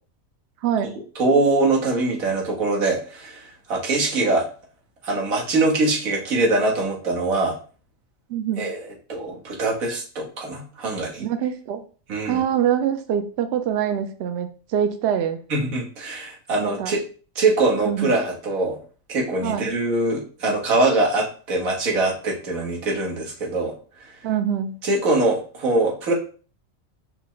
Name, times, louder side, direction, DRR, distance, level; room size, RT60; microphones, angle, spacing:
voice 1, 0.6-0.9 8.3-8.7 11.2-11.8 12.3-15.4 16.6-16.9 17.9-18.1 19.4-19.7 24.2-24.8, right 9 dB, 65° right, 9 dB, 0.7 m, -24 dB
voice 2, 1.1-4.5 5.0-7.6 8.6-11.3 12.1-12.4 15.5-17.0 17.3-18.8 19.1-23.7 24.0-24.1 24.8-26.1, right 2 dB, 90° right, -2 dB, 1.6 m, -23 dB
5.6 x 2.1 x 3.8 m, 0.39 s
omnidirectional pair, 1.4 m